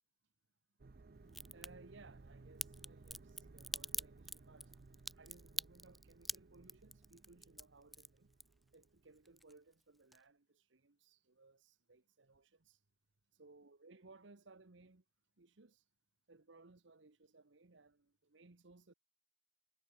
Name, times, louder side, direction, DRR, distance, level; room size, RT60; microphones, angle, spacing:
sound 1, 0.8-9.4, right 3 dB, 50° right, 0.6 m, -60 dB
Crack, 1.3-1.7 2.6-8.8 9.2-9.8 10.1-10.2, equal, ahead, 0.4 m, -44 dB
voice 1, 1.5-4.7 5.2-8.3 8.7-12.8 13.4-15.0 15.4-15.9 16.3-18.9, right 3 dB, 65° right, 1.1 m, -63 dB
head